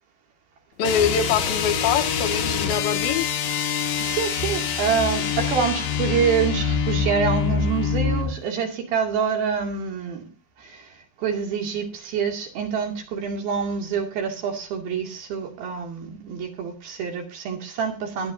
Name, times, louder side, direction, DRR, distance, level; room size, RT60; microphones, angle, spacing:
voice 1, 0.8-3.3, left 8 dB, 80° left, 2.8 m, -24 dB
sound 1, 0.8-8.4, left 6 dB, 60° left, 2.9 m, -25 dB
voice 2, 4.0-10.3 10.6-18.3, right 6 dB, 75° right, 4.3 m, -26 dB
22.0 x 9.6 x 2.6 m
omnidirectional pair, 4.3 m